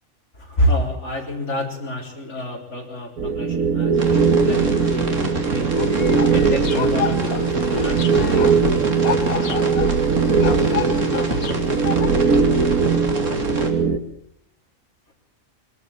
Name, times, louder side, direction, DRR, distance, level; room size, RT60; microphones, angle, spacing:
voice 1, 0.4-6.0 6.3-9.7 10.4-10.5 11.9-12.0, equal, 55° left, 1 dB, 4.4 m, -28 dB
sound 1, 3.2-14.0, right 5 dB, 75° right, 1.9 m, -20 dB
sound 2, 3.9-13.7, right 2 dB, 60° right, 3.0 m, -28 dB
sound 3, 5.7-12.1, left 8 dB, 85° left, 1.7 m, -30 dB
22.5 x 13.5 x 8.8 m, 0.72 s
omnidirectional pair, 1.4 m